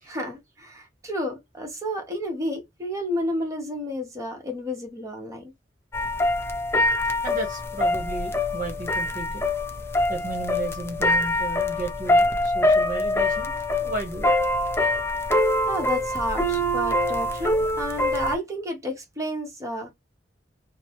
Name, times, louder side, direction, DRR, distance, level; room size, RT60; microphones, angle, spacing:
voice 1, 0.1-5.5 15.7-19.9, equal, 15° right, 1.0 m, -31 dB
sound 1, 5.9-18.4, left 1 dB, 15° left, 0.4 m, -24 dB
voice 2, 7.2-9.4 10.1-14.3, right 2 dB, 45° right, 0.9 m, -34 dB
3.0 x 2.0 x 2.9 m
head